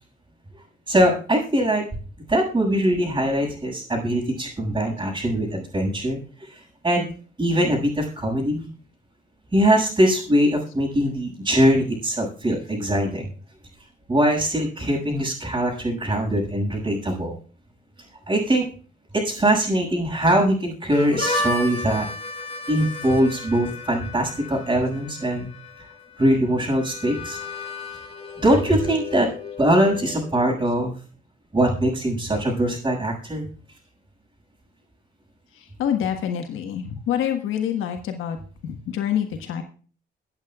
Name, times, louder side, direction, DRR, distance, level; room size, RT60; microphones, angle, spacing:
voice 1, 0.9-1.8 2.3-7.1 7.4-8.7 9.5-13.3 14.1-17.4 18.3-18.7 19.1-22.1 22.7-25.5 26.2-27.4 28.4-29.3 29.6-30.9 31.5-33.4, right 1 dB, 20° right, -6 dB, 6.3 m, -22 dB
Harmonica, 20.9-30.5, left 2 dB, 30° left, 3.2 m, -33 dB
voice 2, 35.5-38.4 38.6-39.6, left 9 dB, 85° left, 5 dB, 1.5 m, -26 dB
23.5 x 8.5 x 2.4 m, 0.40 s
cardioid pair, 90°, 20 cm